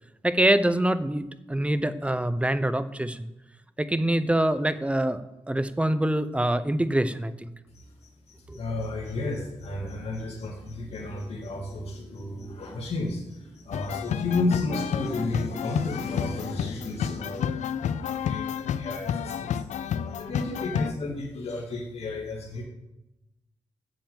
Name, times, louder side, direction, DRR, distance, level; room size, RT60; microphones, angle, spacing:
voice 1, 0.2-3.3 3.8-5.2 5.5-7.5 8.5-8.6, right 1 dB, 10° right, 13 dB, 0.7 m, -25 dB
voice 2, 7.7-19.6 20.0-22.6, left 2 dB, 60° left, -2 dB, 2.3 m, -32 dB
sound 1, 13.7-20.9, left 8 dB, 85° left, 0.5 m, -31 dB
8.9 x 7.2 x 7.9 m, 0.95 s
cardioid pair, 95°, 12 cm